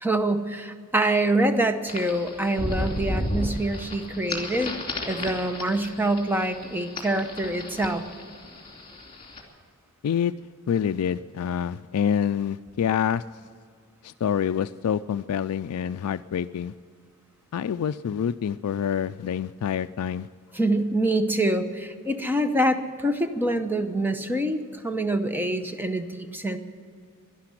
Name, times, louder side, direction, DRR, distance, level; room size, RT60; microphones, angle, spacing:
voice 1, 0.0-4.8 5.1-8.0 20.5-26.6, right 1 dB, 10° right, 8 dB, 0.8 m, -25 dB
sound 1, 1.9-9.4, left 1 dB, 25° left, 2.7 m, -34 dB
voice 2, 10.7-13.2 14.0-16.7 17.5-20.3, left 8 dB, 80° left, 11 dB, 0.3 m, -26 dB
12.0 x 11.5 x 9.9 m, 2.3 s
head